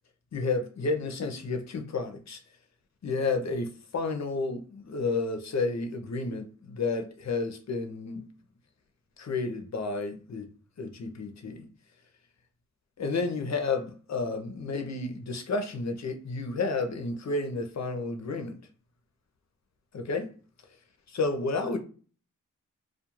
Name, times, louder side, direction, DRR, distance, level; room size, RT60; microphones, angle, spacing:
voice 1, 0.3-2.4 3.0-8.2 9.2-10.5 10.8-11.6 13.0-18.6 19.9-20.3 21.1-21.8, left 3 dB, 55° left, 0.7 m, -31 dB
2.3 x 2.3 x 2.9 m
cardioid pair, 60°, 32 cm